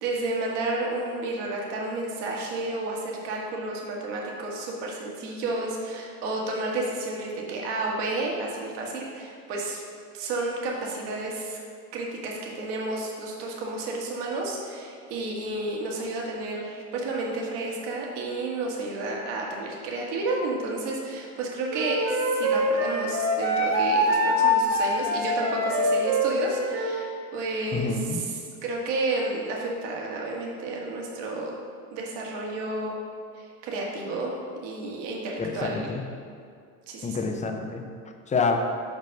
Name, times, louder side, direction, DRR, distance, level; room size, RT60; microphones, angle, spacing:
voice 1, 0.0-9.8 10.1-11.6 11.9-28.3 28.6-31.6 31.9-33.0 33.3-35.9 36.9-37.2, right 2 dB, 55° right, -2 dB, 1.5 m, -31 dB
Wind instrument woodwind instrument, 21.7-27.0, equal, 75° right, 1.6 m, -24 dB
voice 2, 27.7-28.2 35.4-36.0 37.0-37.9 38.3-38.6, left 4 dB, 15° left, 4 dB, 0.5 m, -27 dB
5.4 x 5.2 x 5.2 m, 2.2 s
hypercardioid pair, 85°, 50 cm